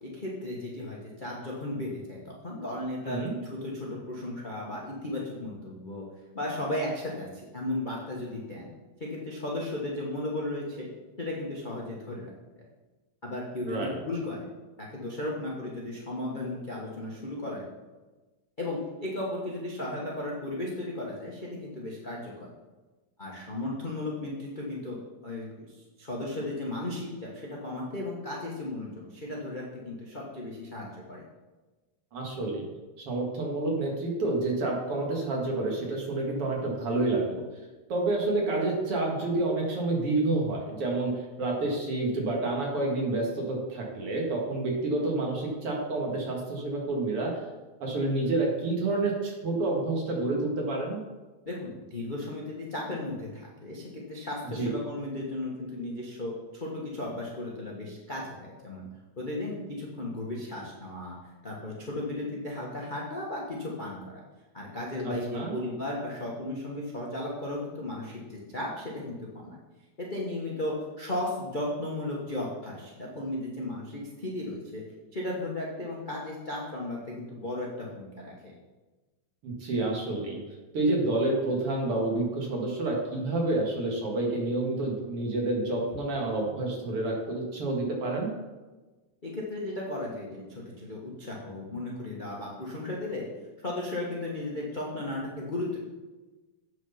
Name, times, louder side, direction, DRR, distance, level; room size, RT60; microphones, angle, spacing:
voice 1, 0.0-6.0 6.3-7.3 7.5-8.7 9.0-10.9 11.2-12.3 13.2-14.5 14.8-17.6 18.6-22.5 23.2-31.2 51.4-58.9 59.2-61.2 61.4-64.2 64.5-69.6 70.0-74.8 75.1-78.3 89.2-93.2 93.6-95.8, left 1 dB, 70° left, -3 dB, 0.4 m, -35 dB
voice 2, 13.6-14.0 32.1-32.7 33.1-37.4 37.9-41.1 41.4-47.3 47.8-51.0 54.5-54.7 65.0-65.5 79.4-80.4 80.7-88.3, right 2 dB, 55° right, -1 dB, 2.5 m, -29 dB
8.5 x 6.3 x 5.7 m, 1.2 s
omnidirectional pair, 3.3 m